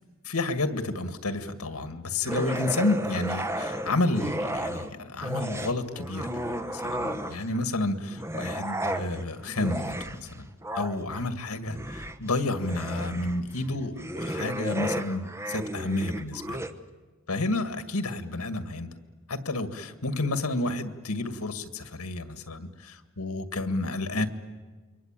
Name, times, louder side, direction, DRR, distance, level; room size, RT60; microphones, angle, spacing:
voice 1, 0.3-10.5 10.7-16.6 17.3-18.9 19.3-24.3, left 2 dB, 85° left, 10 dB, 2.0 m, -30 dB
sound 1, 2.2-4.9 5.2-7.6 8.1-16.7, right 1 dB, 10° right, 1.0 m, -33 dB
28.5 x 23.5 x 9.0 m, 1.4 s
head